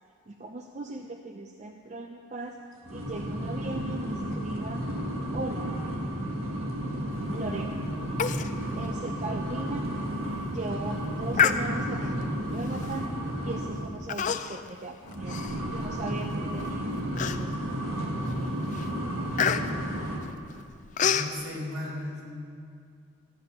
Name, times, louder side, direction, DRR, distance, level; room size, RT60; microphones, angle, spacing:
voice 1, 0.3-2.6 2.9-4.8 5.3-5.7 7.3-7.8 8.8-9.9 10.5-13.1 13.4-15.4 15.7-17.6 18.3-18.7, right 2 dB, 35° right, 3 dB, 0.5 m, -38 dB
sound 1, 2.8-14.0 15.0-20.2, equal, 85° right, 1.8 m, -32 dB
Human voice, 8.2-8.5 8.8-8.9 9.4-9.6 10.1-10.4 11.3-12.1 12.8-13.1 14.1-14.7 15.1-16.1 16.6-16.7 17.2-17.7 18.2-18.4 18.7-21.3, left 7 dB, 35° left, 0.4 m, -28 dB
voice 2, 21.0-22.4, left 1 dB, 65° right, -3 dB, 3.8 m, -36 dB
13.5 x 8.6 x 7.0 m, 2.2 s
head